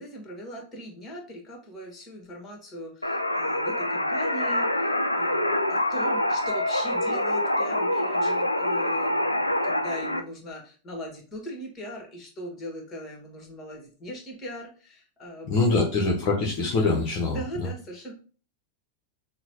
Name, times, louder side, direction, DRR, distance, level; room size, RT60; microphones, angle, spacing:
voice 1, 0.0-15.8 17.2-18.1, equal, 20° left, 1 dB, 1.5 m, -40 dB
sound 1, 3.0-10.2, left 1 dB, 85° left, 0.3 m, -25 dB
voice 2, 15.4-17.7, left 3 dB, 40° left, -1 dB, 0.8 m, -24 dB
5.7 x 2.2 x 2.9 m, 0.38 s
figure-of-eight pair, 90°, 0 cm